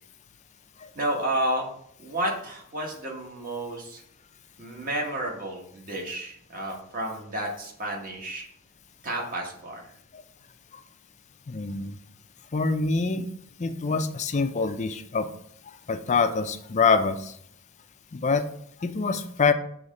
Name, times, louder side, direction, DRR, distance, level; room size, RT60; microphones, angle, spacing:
voice 1, 0.9-1.7 2.0-4.0 4.6-8.5 9.0-9.9, right 1 dB, 40° right, 0 dB, 1.4 m, -31 dB
voice 2, 11.5-12.0 12.5-13.3 13.6-15.3 15.9-17.3 18.1-18.4 18.8-19.5, left 4 dB, 35° left, 8 dB, 0.5 m, -25 dB
6.3 x 3.1 x 5.2 m, 0.69 s
head